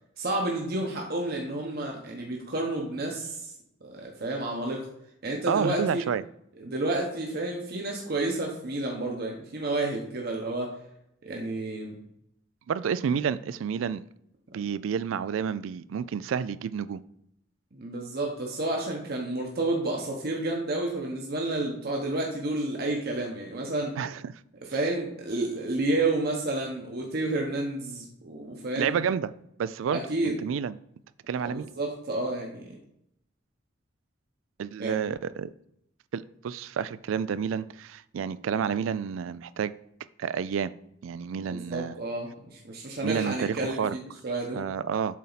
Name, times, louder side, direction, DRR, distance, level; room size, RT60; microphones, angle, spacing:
voice 1, 0.2-3.5 3.8-4.9 5.2-6.0 6.6-10.7 11.2-12.0 17.7-23.9 24.7-29.0 29.9-30.4 31.4-32.7 34.8-35.0 41.4-44.6, right 2 dB, 55° right, 0 dB, 1.0 m, -30 dB
voice 2, 5.5-6.2 12.7-14.1 14.5-17.0 24.0-24.3 28.8-29.3 29.6-30.8 31.3-31.7 34.6-35.5 36.1-39.7 40.2-40.7 41.0-41.9 43.0-44.0 44.6-45.2, right 7 dB, 85° right, 17 dB, 0.3 m, -30 dB
7.4 x 4.2 x 4.0 m, 0.77 s
head